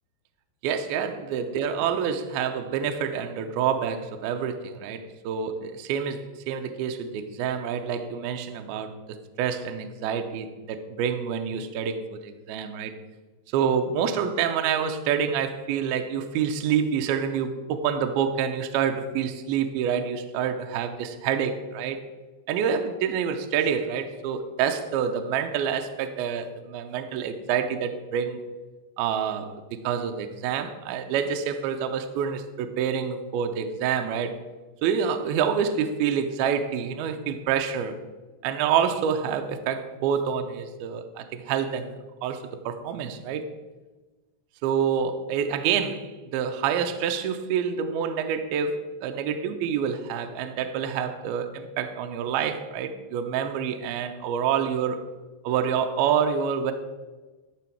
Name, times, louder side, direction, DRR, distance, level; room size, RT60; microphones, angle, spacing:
voice 1, 0.6-8.9 9.4-12.9 13.5-22.0 22.5-28.4 29.0-34.3 34.8-38.0 38.4-43.5 44.6-55.0 55.4-56.7, right 7 dB, 80° right, 7 dB, 2.4 m, -27 dB
12.5 x 6.1 x 4.5 m, 1.2 s
omnidirectional pair, 4.9 m